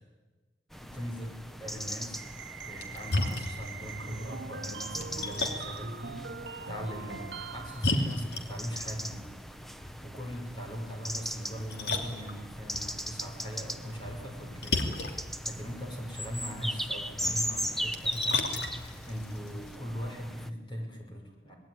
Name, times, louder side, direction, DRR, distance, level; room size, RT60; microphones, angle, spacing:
sound 1, 0.7-20.5, equal, ahead, 0.8 m, -39 dB
voice 1, 0.8-2.2 2.5-9.3 10.0-18.5 19.1-21.5, equal, 25° left, 1 dB, 6.0 m, -40 dB
sound 2, 2.2-8.0, right 5 dB, 85° right, 0.9 m, -43 dB
Splash splatter, 2.6-19.8, left 2 dB, 70° left, 3.0 m, -37 dB
26.5 x 20.0 x 9.9 m, 1.3 s
head